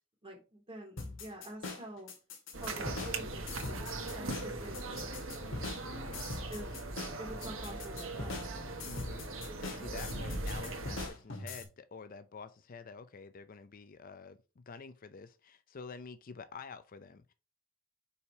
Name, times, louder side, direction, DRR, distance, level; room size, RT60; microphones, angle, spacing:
voice 1, 0.2-2.1 2.6-3.9 4.1-5.3 6.5-6.7 7.2-8.5, right 1 dB, 30° right, 2.7 m, -47 dB
sound 1, 1.0-11.6, left 3 dB, 75° left, 2.2 m, -43 dB
sound 2, 2.5-11.1, right 2 dB, 90° right, 1.4 m, -40 dB
voice 2, 4.4-4.8 5.8-6.5 8.8-17.3, left 5 dB, 45° left, 0.5 m, -49 dB
5.6 x 4.9 x 4.5 m
head